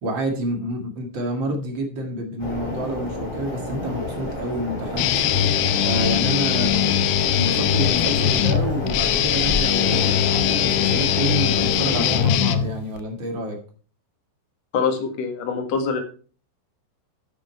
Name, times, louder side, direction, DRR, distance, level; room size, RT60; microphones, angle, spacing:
voice 1, 0.0-5.2 5.8-6.9 7.3-13.6, right 1 dB, 50° right, 3 dB, 1.3 m, -28 dB
sound 1, 2.4-12.3, left 1 dB, 10° left, 3.2 m, -29 dB
Guitar, 5.0-13.0, left 11 dB, 80° left, 2.3 m, -21 dB
voice 2, 14.7-16.0, left 5 dB, 55° left, 4 dB, 2.1 m, -24 dB
9.3 x 8.7 x 4.4 m, 0.40 s
omnidirectional pair, 5.5 m